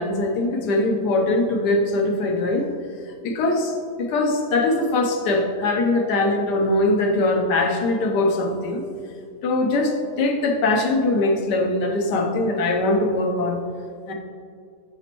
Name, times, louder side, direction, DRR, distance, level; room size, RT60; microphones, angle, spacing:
voice 1, 0.0-2.7 3.2-8.8 9.4-13.6 14.1-14.2, left 2 dB, 90° left, 3 dB, 1.3 m, -22 dB
8.5 x 6.0 x 2.9 m, 2.2 s
omnidirectional pair, 1.7 m